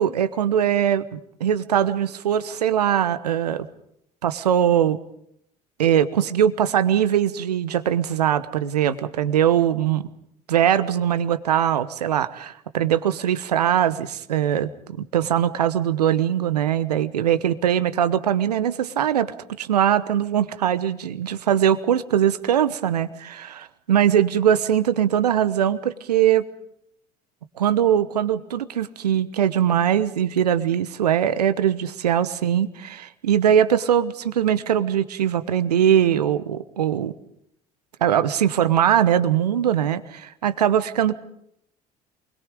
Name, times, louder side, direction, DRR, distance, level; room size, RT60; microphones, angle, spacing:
voice 1, 0.0-3.7 4.2-5.0 5.8-10.1 10.5-26.4 27.6-37.1 38.0-41.1, right 9 dB, 80° right, 13 dB, 1.1 m, -21 dB
27.5 x 21.5 x 5.2 m, 0.74 s
figure-of-eight pair, 60°, 20 cm